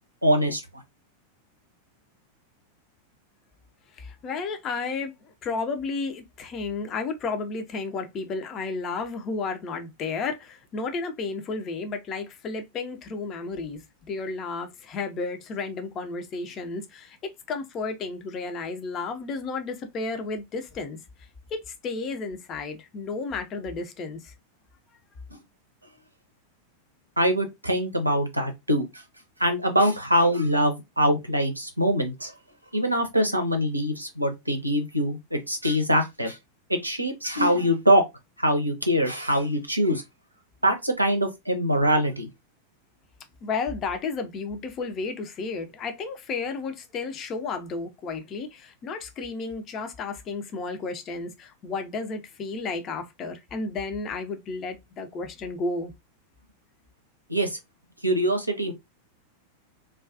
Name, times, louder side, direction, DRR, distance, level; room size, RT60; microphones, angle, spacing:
voice 1, 0.2-0.8 25.3-25.4 27.2-29.0 29.4-32.3 32.7-36.4 36.7-38.0 38.4-40.0 40.6-42.3 57.3-57.6 58.0-58.7, equal, 85° right, 0.5 m, -23 dB
voice 2, 3.9-13.8 14.1-21.0 21.5-24.3 43.4-55.9, left 4 dB, 30° left, 0.5 m, -32 dB
2.3 x 2.2 x 2.4 m
figure-of-eight pair, 90°, 0 cm